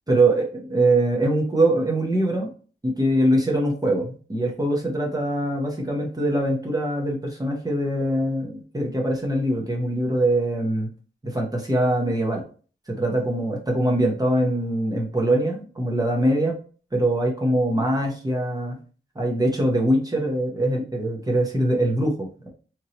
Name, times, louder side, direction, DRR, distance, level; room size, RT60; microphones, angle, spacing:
voice 1, 0.1-2.5 2.8-10.9 11.2-12.4 12.9-16.6 16.9-18.8 19.2-22.5, right 1 dB, 20° right, -1 dB, 0.7 m, -23 dB
3.0 x 2.7 x 2.8 m, 0.40 s
wide cardioid pair, 145°, 20 cm